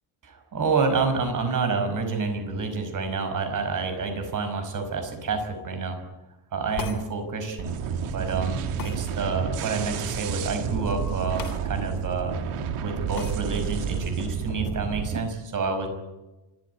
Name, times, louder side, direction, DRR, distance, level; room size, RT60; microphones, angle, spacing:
voice 1, 0.3-6.0 6.5-7.7 8.1-12.4 12.8-15.9, right 4 dB, 40° right, 7 dB, 5.4 m, -28 dB
sound 1, 6.8-7.1 8.8-9.0 11.4-11.6 12.0-12.1 13.1-13.4, left 5 dB, 40° left, 3.6 m, -34 dB
sound 2, 7.6-15.2, right 7 dB, 85° right, 2.5 m, -30 dB
26.0 x 14.0 x 9.6 m, 1.1 s
cardioid pair, 165°, 49 cm